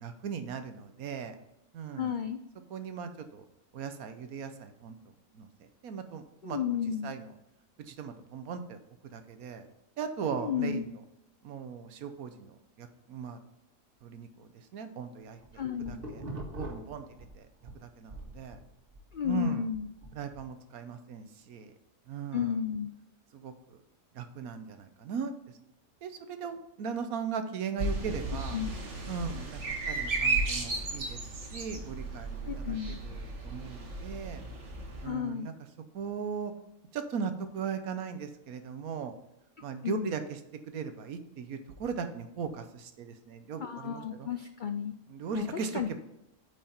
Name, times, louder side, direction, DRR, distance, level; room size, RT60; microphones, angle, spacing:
voice 1, 0.0-1.4 1.7-2.1 2.7-3.4 3.7-5.0 5.3-6.8 7.0-7.3 7.8-8.8 9.1-9.6 10.0-10.9 11.4-13.4 14.0-15.6 15.9-16.2 16.6-17.1 17.3-17.5 17.8-18.6 19.2-19.7 20.1-21.7 22.1-22.6 23.3-23.8 24.1-25.3 26.0-28.6 29.1-29.6 29.9-34.4 35.0-35.5 35.9-36.5 36.9-39.1 39.6-40.4 40.7-44.3 45.1-46.0, right 6 dB, 85° right, 8 dB, 1.3 m, -38 dB
voice 2, 2.0-2.4 6.4-7.1 10.4-10.9 15.5-16.0 19.1-19.9 22.3-22.9 28.5-28.7 32.5-33.0 35.0-35.5 39.8-40.1 43.6-44.9 45.3-45.5 45.7-46.0, left 8 dB, 90° left, 7 dB, 0.4 m, -32 dB
sound 1, 15.2-17.8 18.1-20.5, right 1 dB, 40° right, 2.1 m, -43 dB
sound 2, 27.8-35.1, right 3 dB, 55° right, 1.7 m, -34 dB
9.0 x 5.1 x 4.3 m, 0.87 s
omnidirectional pair, 1.5 m